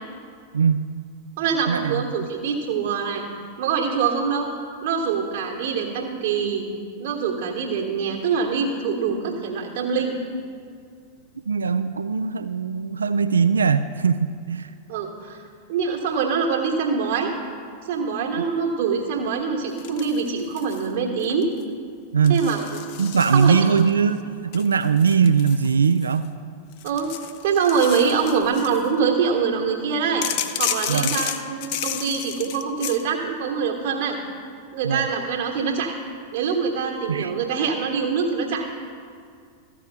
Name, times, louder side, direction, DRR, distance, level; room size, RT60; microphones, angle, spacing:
voice 1, 0.5-0.9 1.7-2.0 11.5-14.7 22.1-22.4 23.0-26.3 30.9-31.2 34.8-35.1 37.1-37.5, right 6 dB, 70° right, 11 dB, 0.3 m, -20 dB
voice 2, 1.4-3.2 3.6-4.5 4.8-6.7 7.0-10.1 14.9-15.4 15.7-17.3 17.8-21.5 22.3-22.6 23.3-23.6 26.8-27.1 27.4-30.3 30.6-34.2 34.7-35.9 36.3-38.7, right 6 dB, 50° right, 0 dB, 1.4 m, -24 dB
sound 1, 19.8-20.9 21.2-21.6 22.2-23.9 24.5-26.3 26.7-28.9 30.2-33.0, left 10 dB, 45° left, 0.6 m, -32 dB
14.0 x 4.8 x 8.0 m, 2.3 s
figure-of-eight pair, 90°, 0 cm